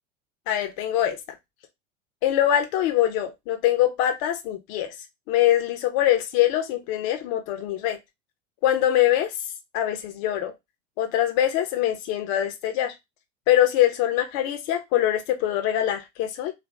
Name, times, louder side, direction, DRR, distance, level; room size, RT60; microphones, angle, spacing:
voice 1, 0.5-1.2 2.2-4.9 5.3-8.0 8.6-9.3 9.7-10.5 11.0-12.9 13.5-16.5, left 12 dB, 50° left, 0.9 m, -23 dB
3.2 x 2.6 x 4.5 m
hypercardioid pair, 90°, 37 cm